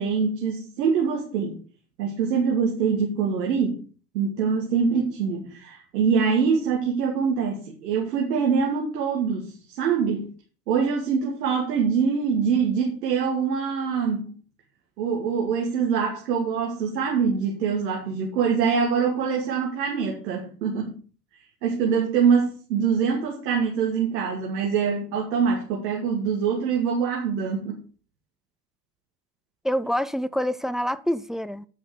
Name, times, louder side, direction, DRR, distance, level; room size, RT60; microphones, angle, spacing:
voice 1, 0.0-1.6 2.0-3.8 4.1-10.3 10.7-14.3 15.0-21.0 21.6-27.8, right 6 dB, 80° right, 2.2 m, -24 dB
voice 2, 29.6-31.7, equal, ahead, 0.3 m, -26 dB
8.7 x 6.1 x 6.7 m
hypercardioid pair, 75°, 49 cm